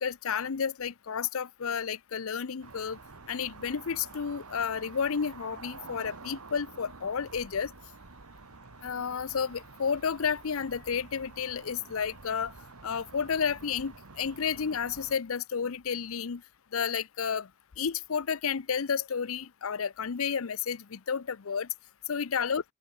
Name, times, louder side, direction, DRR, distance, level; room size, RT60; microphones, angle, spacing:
voice 1, 0.0-3.0 3.3-7.7 8.8-12.5 12.8-16.4 16.7-17.5 17.8-21.7 22.1-22.6, left 6 dB, 70° left, 0.6 m, -31 dB
sound 1, 2.6-15.2, right 4 dB, 85° right, 1.8 m, -49 dB
open air
head